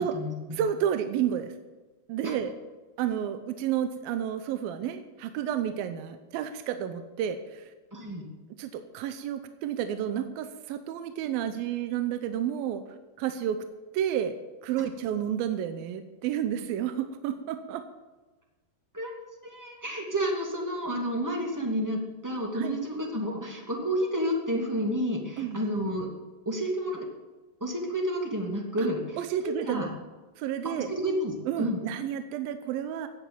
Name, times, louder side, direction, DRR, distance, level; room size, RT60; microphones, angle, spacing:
voice 1, 0.0-0.6 2.2-2.4 7.9-8.2 18.9-19.1 19.4-26.1 26.4-27.0 27.6-29.9 30.6-31.8, equal, 10° right, 0 dB, 1.1 m, -30 dB
voice 2, 0.5-1.5 2.1-2.5 3.0-7.7 8.6-12.8 13.2-13.6 13.9-14.4 14.6-17.8 22.5-22.8 25.4-25.6 28.8-28.9 29.2-29.9 30.4-30.9 31.5-33.1, right 10 dB, 75° right, 9 dB, 2.2 m, -31 dB
15.5 x 9.1 x 8.6 m, 1.2 s
omnidirectional pair, 5.0 m